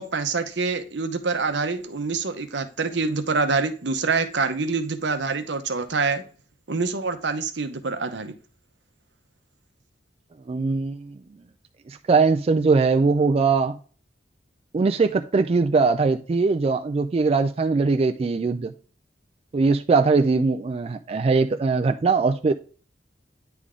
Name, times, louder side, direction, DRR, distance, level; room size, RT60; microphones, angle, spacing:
voice 1, 0.0-6.2 6.7-8.3, right 4 dB, 75° right, 0.9 m, -26 dB
voice 2, 10.5-11.1 11.9-13.8 14.7-18.7 19.5-22.5, right 4 dB, 35° right, 0.3 m, -21 dB
9.7 x 3.5 x 3.6 m
head